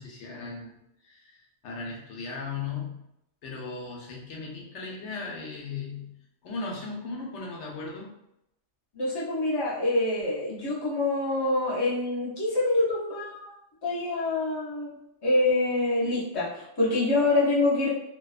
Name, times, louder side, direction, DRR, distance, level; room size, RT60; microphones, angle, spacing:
voice 1, 0.0-3.0 3.4-6.2 6.4-8.1, left 4 dB, 75° left, -2 dB, 0.9 m, -37 dB
voice 2, 8.9-13.4 13.8-14.9 15.2-17.9, left 2 dB, 30° left, -6 dB, 0.5 m, -26 dB
2.7 x 2.2 x 2.3 m, 0.81 s
omnidirectional pair, 1.2 m